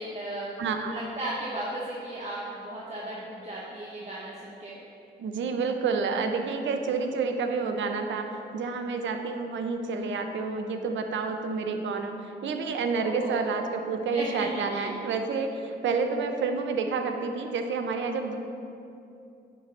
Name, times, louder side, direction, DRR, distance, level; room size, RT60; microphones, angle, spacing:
voice 1, 0.0-4.8 12.9-13.4 14.1-14.9, right 1 dB, 35° right, -6 dB, 1.2 m, -36 dB
voice 2, 0.6-1.0 5.2-18.4, right 4 dB, 85° right, 5 dB, 0.6 m, -29 dB
9.4 x 3.2 x 5.4 m, 2.7 s
cardioid pair, 60°, 19 cm